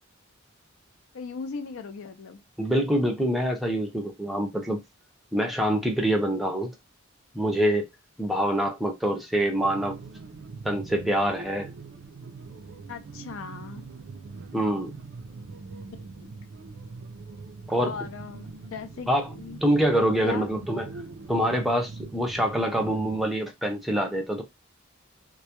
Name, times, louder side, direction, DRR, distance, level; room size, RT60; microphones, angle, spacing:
voice 1, 1.1-2.4 12.9-13.9 16.2-16.3 17.8-19.6 20.2-20.5, left 5 dB, 65° left, 0.4 m, -38 dB
voice 2, 2.6-4.8 5.3-6.7 7.3-7.8 8.2-10.0 10.6-11.7 14.5-14.9 17.7-17.9 19.1-19.3 19.6-20.9 21.3-24.4, equal, ahead, 0.5 m, -25 dB
sound 1, 9.6-23.3, right 4 dB, 55° right, 0.4 m, -42 dB
2.2 x 2.0 x 2.8 m
head